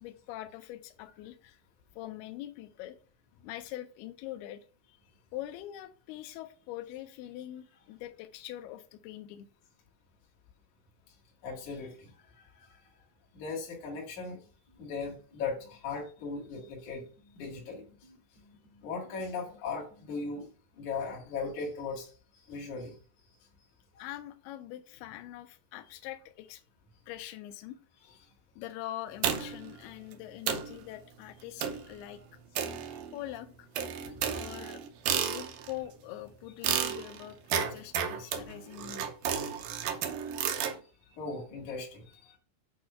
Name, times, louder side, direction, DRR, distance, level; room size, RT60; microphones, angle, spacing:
voice 1, 0.0-1.6 2.0-3.0 3.4-5.0 5.3-9.5 24.0-26.6 27.1-27.8 28.6-32.2 33.1-33.7 34.3-34.8 35.2-39.1, left 14 dB, 80° left, 8 dB, 2.3 m, -43 dB
voice 2, 11.4-12.1 12.6-12.7 13.3-14.4 14.8-17.0 17.3-17.8 18.8-20.5 20.8-22.1 22.5-22.9 34.1-34.2 35.2-35.4 38.2-38.3 41.2-42.4, left 4 dB, 50° left, -3 dB, 2.9 m, -38 dB
sound 1, 14.7-20.3, left 1 dB, 15° left, 1.2 m, -61 dB
sound 2, 29.2-29.7 30.1-30.2 30.5-30.8 31.6-31.9 32.6-33.3 33.8-35.8 36.6-40.8, right 8 dB, 80° right, 2.1 m, -32 dB
8.6 x 3.0 x 5.6 m, 0.39 s
omnidirectional pair, 4.9 m